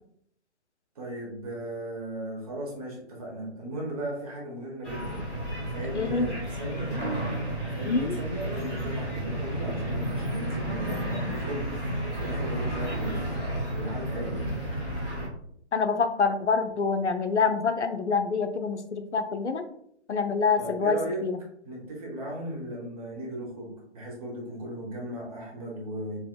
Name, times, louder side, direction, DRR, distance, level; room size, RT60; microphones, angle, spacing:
voice 1, 0.9-5.2 5.7-7.0 7.7-13.3 13.7-14.5 20.6-21.3 21.6-26.2, right 1 dB, 30° right, -2 dB, 1.0 m, -36 dB
sound 1, 4.8-15.3, right 1 dB, ahead, 0.5 m, -32 dB
voice 2, 5.9-6.3 7.9-8.2 15.7-19.6 20.1-21.4, left 5 dB, 80° left, 8 dB, 0.5 m, -26 dB
4.3 x 2.8 x 2.3 m, 0.70 s
figure-of-eight pair, 140°, 35 cm